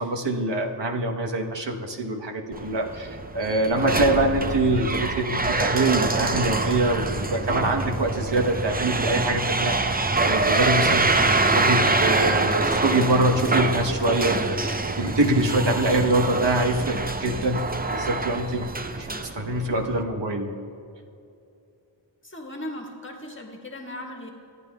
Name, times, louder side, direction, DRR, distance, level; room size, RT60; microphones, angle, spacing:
voice 1, 0.0-17.6 17.9-18.7 18.9-19.1 19.3-20.6, right 2 dB, 70° right, 2 dB, 1.1 m, -24 dB
sound 1, 2.5-20.0, right 3 dB, 20° right, 0.6 m, -25 dB
voice 2, 22.2-24.3, left 1 dB, 25° left, 0 dB, 1.6 m, -37 dB
24.5 x 9.3 x 2.2 m, 2.6 s
wide cardioid pair, 50°, 45 cm